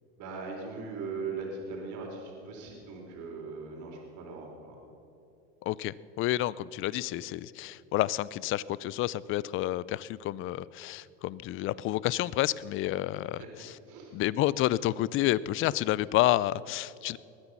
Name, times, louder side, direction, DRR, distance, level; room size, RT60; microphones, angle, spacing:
voice 1, 0.2-4.8 13.4-13.5 13.9-14.1, right 4 dB, 55° right, 0 dB, 3.9 m, -39 dB
voice 2, 5.7-13.7 14.1-17.2, left 15 dB, 35° left, 20 dB, 0.4 m, -29 dB
21.0 x 9.6 x 6.0 m, 2.9 s
supercardioid pair, 110°, 36 cm